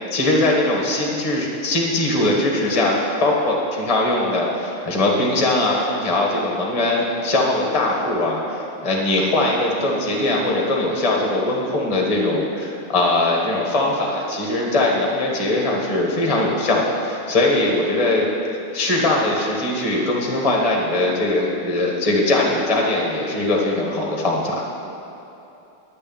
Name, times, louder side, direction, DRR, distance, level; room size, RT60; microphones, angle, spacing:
voice 1, 0.1-18.3 18.7-24.7, left 2 dB, 20° left, -2 dB, 1.2 m, -21 dB
9.8 x 6.6 x 8.6 m, 2.9 s
omnidirectional pair, 2.4 m